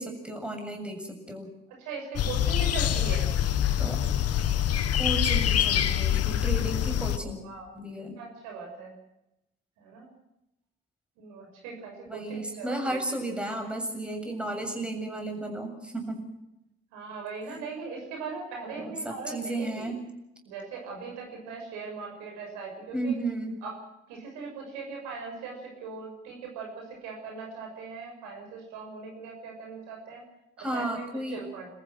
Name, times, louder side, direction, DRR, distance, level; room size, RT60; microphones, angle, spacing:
voice 1, 0.0-1.5 3.8-4.0 5.0-7.4 7.7-8.2 12.1-16.3 17.5-17.6 18.7-20.0 22.9-23.6 30.6-31.4, right 1 dB, 5° right, 4 dB, 7.4 m, -33 dB
voice 2, 1.8-3.3 7.1-7.7 8.1-8.9 9.8-10.1 11.2-13.0 16.9-19.9 20.4-23.1 23.6-23.7 24.1-30.2 30.6-31.0 31.3-31.7, right 4 dB, 70° right, 1 dB, 6.6 m, -39 dB
sound 1, 2.2-7.2, left 10 dB, 55° left, 1.4 m, -25 dB
28.0 x 14.5 x 7.6 m, 0.89 s
figure-of-eight pair, 45°, 29 cm